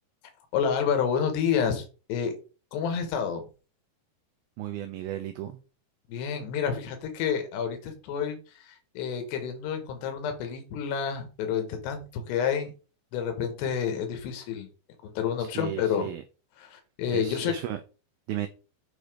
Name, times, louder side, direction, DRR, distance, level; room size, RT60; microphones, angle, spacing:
voice 1, 0.5-2.3 2.7-3.4 6.1-12.7 13.1-14.7 15.0-16.1 16.6-17.5, left 7 dB, 80° left, 3.5 m, -29 dB
voice 2, 4.6-5.6 15.4-16.2 17.1-17.8 18.3-18.5, right 12 dB, 80° right, 2.2 m, -34 dB
8.1 x 4.0 x 5.0 m
omnidirectional pair, 4.9 m